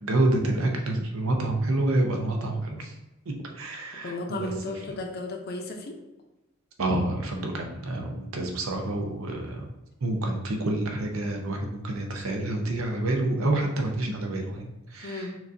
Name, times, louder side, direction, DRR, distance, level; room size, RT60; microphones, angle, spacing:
voice 1, 0.0-2.9 3.3-4.5 6.8-9.6 10.0-15.3, right 1 dB, 85° right, 2 dB, 0.8 m, -28 dB
voice 2, 4.0-6.0 15.0-15.4, left 2 dB, 50° left, 3 dB, 0.6 m, -34 dB
5.8 x 2.7 x 2.6 m, 0.98 s
head